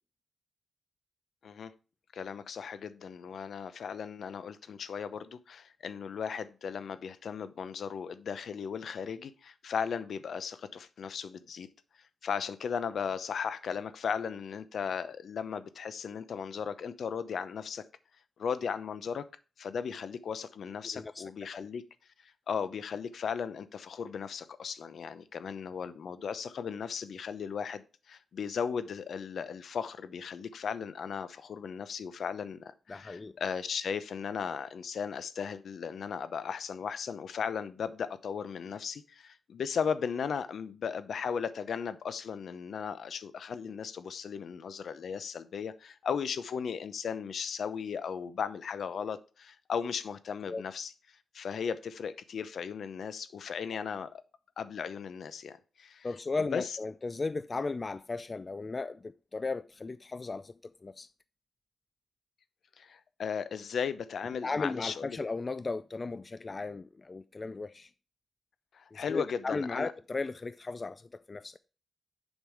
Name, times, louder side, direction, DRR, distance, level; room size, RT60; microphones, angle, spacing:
voice 1, 2.1-11.7 12.2-17.8 18.4-19.2 19.6-21.8 22.2-50.9 51.3-54.2 54.6-56.1 56.5-56.8 62.8-65.2 68.7-69.9, left 6 dB, 70° left, 0.7 m, -36 dB
voice 2, 32.9-33.3 50.5-50.6 56.0-60.5 60.8-61.1 64.4-67.9 68.9-71.6, left 3 dB, 30° left, 0.3 m, -36 dB
7.3 x 5.4 x 4.8 m
cardioid pair, 105°, 0 cm